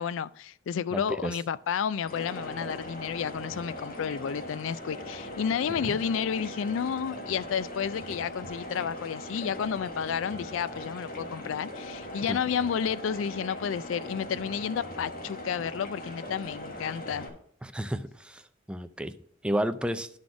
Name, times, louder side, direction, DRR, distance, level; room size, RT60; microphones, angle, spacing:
voice 1, 0.0-17.4, left 7 dB, 80° left, 0.3 m, -31 dB
voice 2, 0.9-1.3 5.9-6.0 12.3-12.4 17.6-18.4 18.7-19.1 19.4-20.1, equal, 5° right, 0.4 m, -31 dB
sound 1, 2.0-17.3, left 1 dB, 50° left, 1.5 m, -40 dB
11.5 x 4.1 x 4.8 m
head